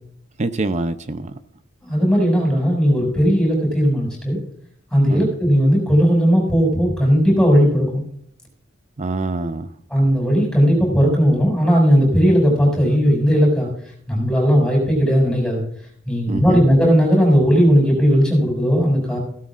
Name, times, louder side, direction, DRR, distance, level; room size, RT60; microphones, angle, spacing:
voice 1, 0.4-1.4 5.1-5.3 9.0-9.7 16.3-16.7, right 2 dB, 35° right, 0.6 m, -25 dB
voice 2, 1.8-4.4 4.9-8.0 9.9-13.7 14.1-15.6 16.1-19.2, equal, 5° left, 6.3 m, -16 dB
16.5 x 13.0 x 2.5 m
head